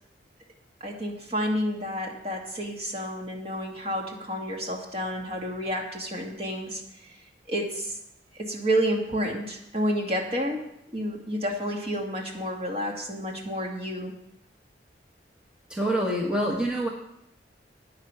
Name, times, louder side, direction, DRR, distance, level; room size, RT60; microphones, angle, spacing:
voice 1, 0.8-6.8 7.5-7.9 8.4-10.7 10.9-14.1, equal, 35° right, 1 dB, 2.2 m, -30 dB
voice 2, 15.7-16.9, right 1 dB, 5° right, -1 dB, 1.3 m, -26 dB
13.5 x 9.5 x 5.8 m, 0.81 s
head